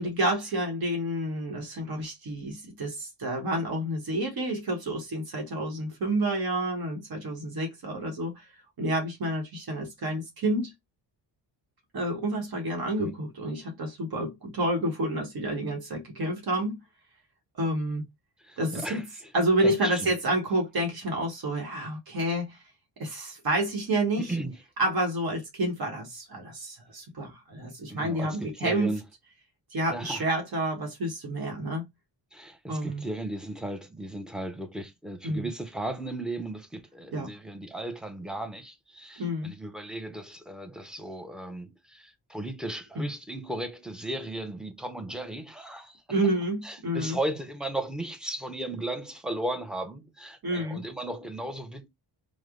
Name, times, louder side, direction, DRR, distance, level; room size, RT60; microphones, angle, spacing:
voice 1, 0.0-8.5 8.8-10.7 11.9-16.8 17.5-18.0 18.6-19.0 19.3-22.6 23.0-24.4 24.8-29.0 29.7-31.8 32.7-33.0 35.2-35.5 37.1-37.3 39.2-39.5 43.0-43.1 46.1-47.2 50.4-50.8, right 1 dB, 55° right, 1.1 m, -29 dB
voice 2, 18.4-19.0 19.6-20.1 24.2-24.6 27.9-29.0 29.9-30.2 32.3-46.0 46.6-51.9, right 1 dB, ahead, 0.4 m, -36 dB
3.2 x 2.1 x 3.6 m
wide cardioid pair, 150°, 43 cm